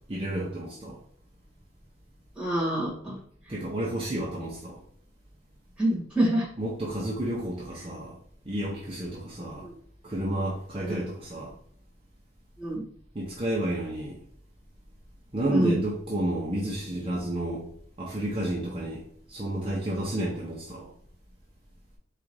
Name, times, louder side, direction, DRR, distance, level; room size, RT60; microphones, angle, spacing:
voice 1, 0.1-1.0 3.5-4.8 6.6-8.1 8.5-9.7 10.0-11.5 13.1-14.2 15.3-17.7 18.0-20.9, right 1 dB, 30° right, 0.7 m, -31 dB
voice 2, 2.4-3.1 5.8-6.4 10.8-10.9 12.6-12.8 15.5-15.8, right 1 dB, 5° right, 1.6 m, -26 dB
3.8 x 2.5 x 4.6 m
head